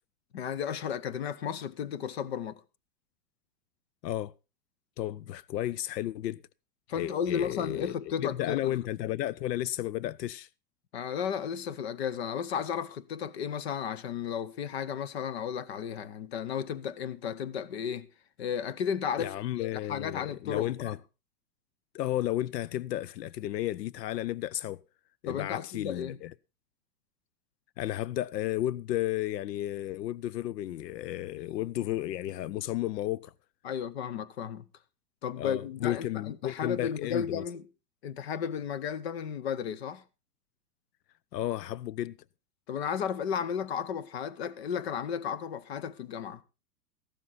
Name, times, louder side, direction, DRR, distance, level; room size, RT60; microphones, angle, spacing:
voice 1, 0.3-2.6 6.9-8.8 10.9-18.1 18.4-19.3 19.9-21.0 25.3-26.2 33.6-34.6 35.2-37.6 38.0-40.0 42.7-46.4, left 7 dB, 40° left, 0.8 m, -34 dB
voice 2, 5.0-6.4 6.9-7.9 8.2-10.5 19.2-21.0 21.9-24.8 25.2-26.3 27.8-33.3 35.4-37.4 41.3-42.2, left 13 dB, 80° left, 0.6 m, -33 dB
15.0 x 12.0 x 4.1 m
supercardioid pair, 180°, 48 cm